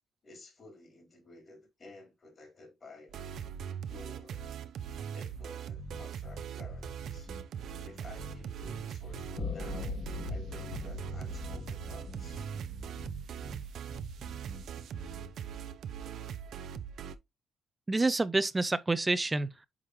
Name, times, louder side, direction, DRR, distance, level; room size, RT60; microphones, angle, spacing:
voice 1, 0.2-3.2 3.9-4.4 5.1-7.3 7.8-10.0 10.3-12.5, left 2 dB, 40° left, 4.0 m, -53 dB
sound 1, 3.1-17.1, right 8 dB, 70° right, 0.5 m, -41 dB
sound 2, 5.8-15.4, left 1 dB, 10° left, 1.4 m, -48 dB
sound 3, 9.4-13.7, left 5 dB, 55° left, 1.4 m, -41 dB
voice 2, 17.9-19.7, right 2 dB, 20° right, 0.6 m, -28 dB
8.7 x 3.7 x 3.1 m
cardioid pair, 90°, 0 cm